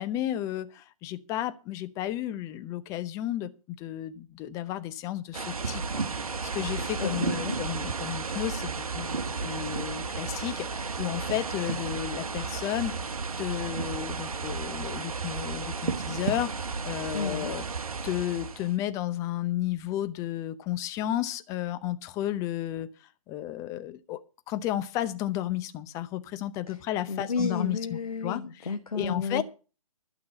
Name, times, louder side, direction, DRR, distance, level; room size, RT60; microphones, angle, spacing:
voice 1, 0.0-17.6 18.0-22.9 23.3-24.2 24.5-28.4 28.9-29.4, left 13 dB, 15° left, 0.7 m, -33 dB
sound 1, 5.3-18.8, right 4 dB, 75° right, 1.3 m, -33 dB
voice 2, 7.0-7.6 17.1-17.5 26.7-26.8 27.1-29.4, left 4 dB, 80° left, 1.4 m, -32 dB
12.0 x 6.0 x 8.5 m
figure-of-eight pair, 140°, 19 cm